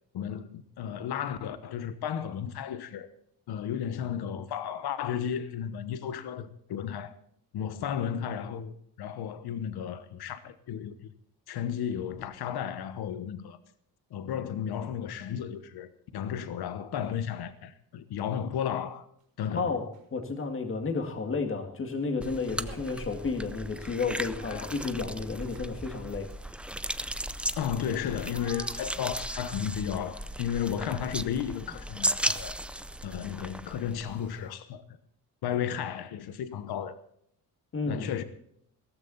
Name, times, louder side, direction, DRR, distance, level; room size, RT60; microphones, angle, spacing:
voice 1, 0.1-3.1 3.5-7.1 7.5-11.1 11.5-13.6 14.1-19.1 19.4-19.7 24.5-24.7 27.6-32.6 33.0-34.8 35.4-37.0 37.8-38.2, left 9 dB, 85° left, 1.2 m, -33 dB
sound 1, 19.2-19.3 19.8-20.2 21.9-22.1 22.3-22.4 22.7-31.5, right 7 dB, 55° right, 4.2 m, -55 dB
voice 2, 19.5-26.3 37.7-38.1, left 4 dB, 35° left, 2.2 m, -32 dB
sound 2, 22.2-34.4, right 1 dB, 5° right, 0.4 m, -36 dB
16.0 x 14.5 x 4.1 m
cardioid pair, 160°, 38 cm